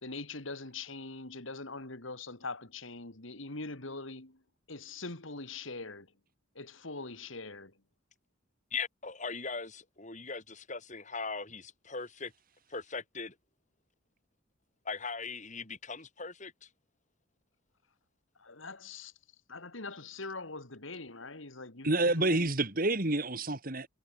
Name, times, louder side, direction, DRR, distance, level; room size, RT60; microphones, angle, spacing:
voice 1, 0.0-4.4 4.7-6.1 6.5-7.7 18.4-19.1 19.5-22.5, left 3 dB, 75° left, 3.0 m, -42 dB
voice 2, 8.7-12.3 12.7-13.3 14.9-16.7, left 4 dB, 35° left, 4.1 m, -39 dB
voice 3, 21.8-23.9, right 2 dB, 45° right, 2.5 m, -28 dB
head